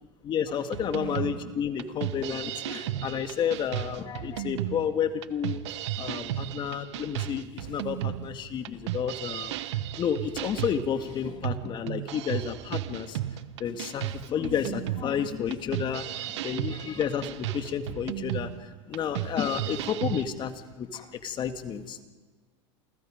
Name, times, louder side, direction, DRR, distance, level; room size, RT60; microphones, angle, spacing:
voice 1, 0.2-5.6 6.0-9.6 10.0-13.2 13.6-22.0, left 8 dB, 30° left, 8 dB, 1.9 m, -31 dB
sound 1, 0.7-20.2, right 13 dB, 80° right, 1.1 m, -34 dB
29.0 x 20.0 x 5.2 m, 1.3 s
supercardioid pair, 125°, 15 cm